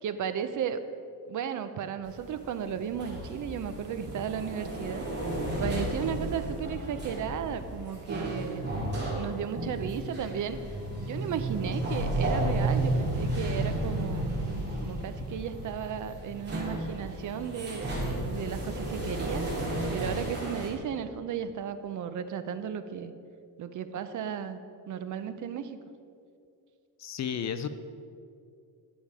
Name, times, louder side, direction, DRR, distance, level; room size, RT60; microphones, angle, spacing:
voice 1, 0.0-0.8 1.3-5.1 5.6-8.6 9.1-10.6 11.0-14.4 14.8-19.5 19.9-23.1 23.6-24.6 24.9-25.8, right 8 dB, 50° right, 11 dB, 0.5 m, -34 dB
sound 1, 2.0-20.7, right 1 dB, 25° right, 2.6 m, -33 dB
voice 2, 27.0-27.7, left 8 dB, 45° left, 11 dB, 0.4 m, -32 dB
11.0 x 7.1 x 4.8 m, 2.4 s
cardioid pair, 155°, 41 cm